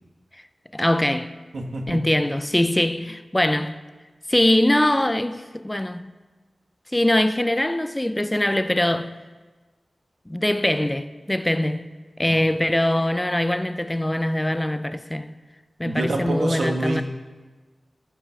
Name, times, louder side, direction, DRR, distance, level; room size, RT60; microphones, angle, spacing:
voice 1, 0.7-1.3 1.9-3.8 4.3-6.1 6.9-9.2 10.3-11.9 12.2-15.3 15.8-17.0, left 1 dB, 10° left, 0.4 m, -22 dB
voice 2, 1.5-2.0 12.2-12.4 15.8-17.0, right 2 dB, 80° right, 1.4 m, -27 dB
14.0 x 5.7 x 7.0 m
wide cardioid pair, 110°, 0 cm